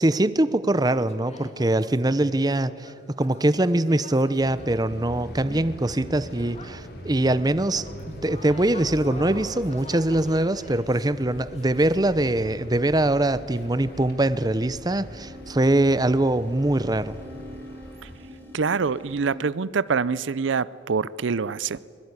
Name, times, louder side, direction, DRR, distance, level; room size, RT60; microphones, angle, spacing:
voice 1, 0.0-7.9 8.2-17.2, right 1 dB, 20° right, 0.7 m, -23 dB
sound 1, 0.8-1.7 2.1-7.2 7.5-14.1, left 2 dB, 35° left, 2.6 m, -45 dB
sound 2, 4.4-18.2, equal, 50° left, 3.6 m, -42 dB
sound 3, 12.4-19.4, equal, 10° left, 4.0 m, -46 dB
voice 2, 18.5-21.9, right 5 dB, 75° right, 0.5 m, -25 dB
23.5 x 22.0 x 9.7 m
head